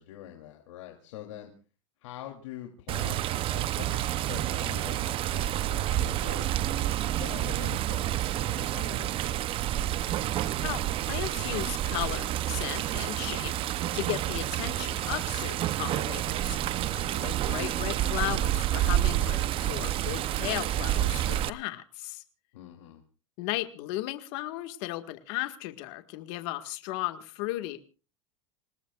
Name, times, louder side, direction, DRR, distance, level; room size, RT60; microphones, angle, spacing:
voice 1, 0.0-1.5 2.0-9.4 22.5-23.0, left 12 dB, 90° left, 2 dB, 3.0 m, -45 dB
Water, 2.9-21.5, right 13 dB, 35° right, 0.7 m, -29 dB
voice 2, 10.6-13.5 13.9-16.6 16.9-22.2 23.4-27.8, left 17 dB, 60° left, 8 dB, 1.8 m, -35 dB
28.0 x 18.5 x 2.4 m, 0.36 s
supercardioid pair, 140°, 16 cm